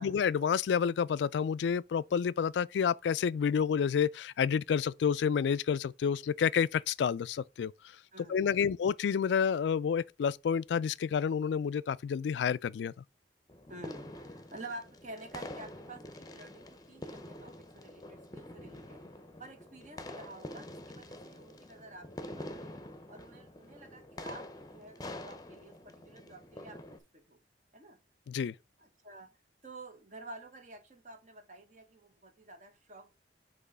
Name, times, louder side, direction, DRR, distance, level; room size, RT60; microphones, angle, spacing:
voice 1, 0.0-7.7 8.3-12.9 28.3-28.5, left 7 dB, 75° left, 0.3 m, -29 dB
voice 2, 8.1-8.6 13.7-19.0 19.4-22.8 23.1-27.4 27.7-28.0 28.8-29.3 29.6-33.1, right 2 dB, 45° right, 1.1 m, -50 dB
sound 1, 13.5-27.0, left 1 dB, 20° left, 0.7 m, -46 dB
6.0 x 3.0 x 5.4 m
head